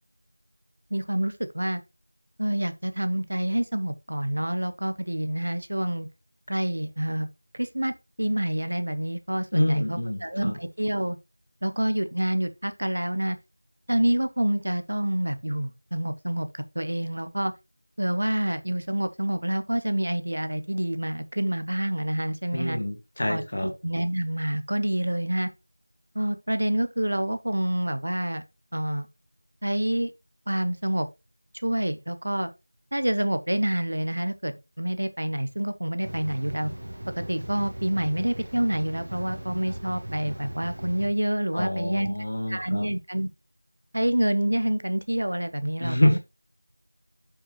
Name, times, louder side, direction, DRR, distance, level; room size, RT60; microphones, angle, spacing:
voice 1, 0.9-1.8 2.4-6.1 6.5-7.3 7.5-11.2 11.6-13.4 13.9-17.5 18.0-22.8 23.2-23.4 23.8-25.5 26.1-28.4 28.7-29.1 29.6-30.1 30.5-31.1 31.6-32.5 32.9-36.7 37.2-42.1 42.5-43.3 43.9-46.2, right 1 dB, 45° right, 0.7 m, -27 dB
voice 2, 9.5-10.6 22.5-23.7 41.5-42.9 45.8-46.2, left 1 dB, 30° left, 1.4 m, -26 dB
sound 1, 36.0-41.1, right 1 dB, 30° right, 1.7 m, -38 dB
7.1 x 5.6 x 3.0 m
figure-of-eight pair, 180°, 0 cm